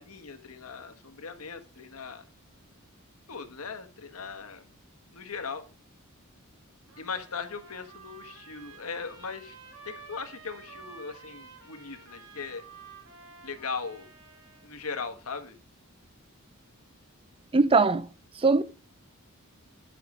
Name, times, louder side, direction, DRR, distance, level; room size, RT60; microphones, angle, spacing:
voice 1, 0.0-2.2 3.3-4.7 5.1-5.6 7.0-9.6 9.8-12.6 13.4-14.1 14.6-15.6, left 5 dB, 85° left, 1.5 m, -39 dB
Trumpet, 6.9-14.8, right 5 dB, 75° right, 4.5 m, -51 dB
voice 2, 17.5-18.1 18.4-18.6, right 3 dB, 25° right, 0.5 m, -21 dB
9.9 x 7.6 x 5.0 m
head